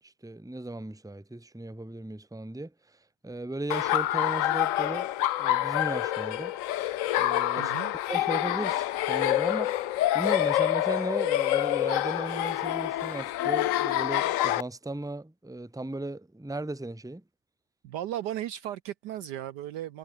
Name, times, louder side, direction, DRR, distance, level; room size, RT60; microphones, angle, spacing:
voice 1, 0.0-2.7 3.2-5.1 5.4-6.5 7.2-7.7 8.1-9.7 10.1-17.2, right 2 dB, ahead, 1.4 m, -36 dB
Laughter, 3.7-14.6, left 13 dB, 80° left, 0.7 m, -27 dB
voice 2, 7.6-7.9 17.8-20.0, right 12 dB, 70° right, 1.2 m, -36 dB
omnidirectional pair, 2.0 m